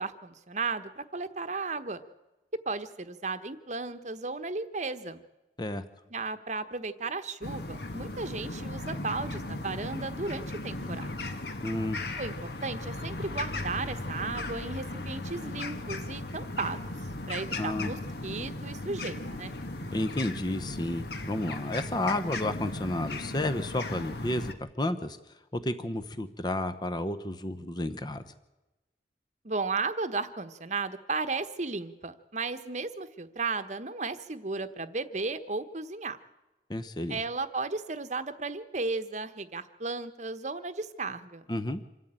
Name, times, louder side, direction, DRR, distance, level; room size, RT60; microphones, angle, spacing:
voice 1, 0.0-2.0 2.7-5.2 6.1-11.1 12.2-16.8 17.3-19.5 29.4-36.2 37.1-41.4, right 3 dB, 40° right, 11 dB, 1.1 m, -35 dB
sound 1, 7.4-24.5, left 2 dB, 60° left, 1.6 m, -37 dB
voice 2, 11.6-12.0 17.6-17.9 19.9-25.2 25.5-28.2 36.7-37.2 41.5-41.8, left 1 dB, 25° left, 11 dB, 0.9 m, -31 dB
26.5 x 13.0 x 9.0 m, 1.1 s
head